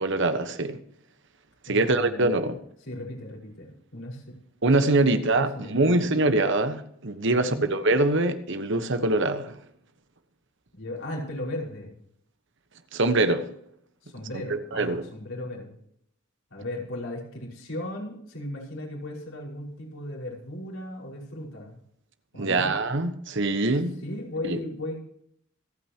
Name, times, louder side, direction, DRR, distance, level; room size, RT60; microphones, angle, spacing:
voice 1, 0.0-0.8 1.7-2.6 4.6-9.6 12.9-13.5 14.7-15.0 22.4-24.0 24.5-24.6, right 2 dB, 65° right, 1.3 m, -24 dB
voice 2, 1.7-2.4 2.9-4.3 5.0-6.2 7.2-7.7 10.7-11.9 14.0-15.8 16.5-21.8 22.3-22.7 24.0-25.0, left 1 dB, 70° left, 5.5 m, -36 dB
27.0 x 9.2 x 3.0 m
head